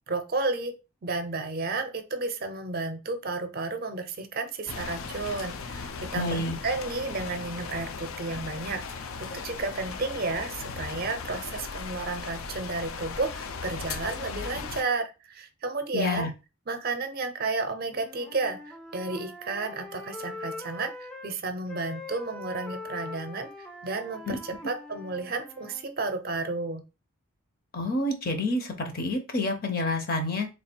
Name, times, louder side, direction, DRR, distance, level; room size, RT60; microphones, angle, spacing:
voice 1, 0.1-0.7 1.0-9.1 9.3-16.3 16.7-26.8, right 3 dB, 45° right, 8 dB, 0.5 m, -32 dB
sound 1, 4.7-14.8, left 5 dB, 75° left, 0.5 m, -37 dB
voice 2, 6.1-6.6 15.9-16.3 24.3-24.4 27.7-30.5, left 2 dB, 45° left, 5 dB, 0.7 m, -28 dB
Wind instrument woodwind instrument, 17.8-21.3 21.7-25.9, left 2 dB, 5° left, 0.4 m, -42 dB
3.3 x 2.4 x 4.3 m, 0.29 s
head